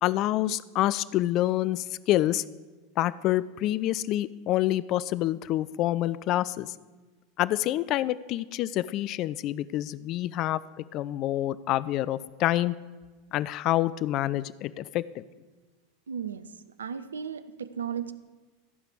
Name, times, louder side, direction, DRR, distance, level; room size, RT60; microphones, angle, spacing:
voice 1, 0.0-2.4 3.0-6.7 7.4-10.6 10.9-12.7 13.3-15.0, left 14 dB, 45° left, 17 dB, 0.3 m, -27 dB
voice 2, 16.1-16.4 16.8-18.1, right 7 dB, 75° right, 14 dB, 0.6 m, -35 dB
14.5 x 5.0 x 7.7 m, 1.3 s
figure-of-eight pair, 85°, 0 cm